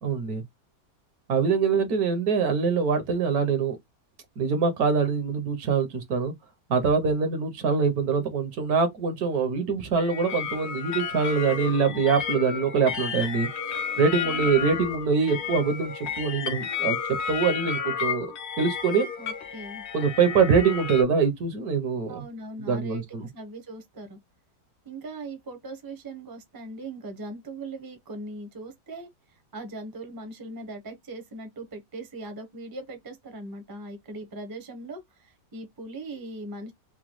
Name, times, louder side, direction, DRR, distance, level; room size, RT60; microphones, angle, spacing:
voice 1, 0.0-0.4 1.3-3.8 4.4-6.3 6.7-13.5 14.0-17.0 17.3-18.3 18.6-19.1 19.9-22.2 22.6-23.2, right 5 dB, 65° right, 1.3 m, -24 dB
sound 1, 10.0-21.0, left 7 dB, 55° left, 0.8 m, -32 dB
voice 2, 19.2-19.8 22.1-24.2 24.8-36.7, right 2 dB, 20° right, 0.6 m, -40 dB
4.9 x 2.2 x 3.0 m
omnidirectional pair, 1.9 m